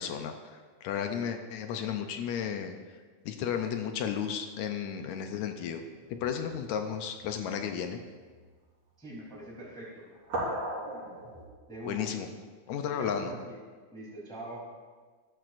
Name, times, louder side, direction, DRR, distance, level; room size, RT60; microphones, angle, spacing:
voice 1, 0.0-2.8 3.3-5.8 6.1-8.0 11.9-12.3 12.7-13.3, left 8 dB, 75° left, 6 dB, 1.9 m, -33 dB
sound 1, 5.8-6.6 7.2-7.4 8.3-8.5 10.1-11.5, right 1 dB, 65° right, 5.4 m, -37 dB
voice 2, 9.0-10.1 11.7-12.3 12.8-13.6 13.9-14.6, right 1 dB, ahead, -6 dB, 2.7 m, -43 dB
13.5 x 12.5 x 2.6 m, 1.5 s
omnidirectional pair, 3.6 m